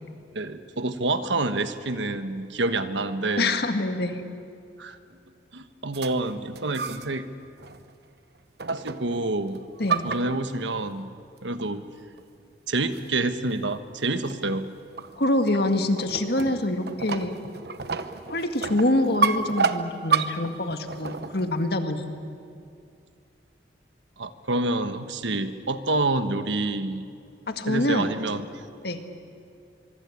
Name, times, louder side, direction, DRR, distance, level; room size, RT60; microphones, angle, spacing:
voice 1, 0.3-3.5 4.8-5.0 5.5-7.2 8.7-9.6 10.0-11.2 11.4-11.8 12.7-14.7 24.2-27.0 27.7-28.7, right 2 dB, 85° right, 10 dB, 1.3 m, -28 dB
voice 2, 3.4-4.2 9.8-10.0 15.2-17.3 18.3-22.1 27.5-28.1 28.8-29.0, left 1 dB, 60° left, 6 dB, 1.8 m, -25 dB
sound 1, 5.9-7.2 7.6-7.9 8.6-9.2 9.5-10.9 11.6-11.7 12.2-12.3 12.9-13.2 13.5-13.7 14.3-21.7, right 5 dB, 60° right, 1.0 m, -30 dB
24.0 x 23.5 x 8.6 m, 2.3 s
head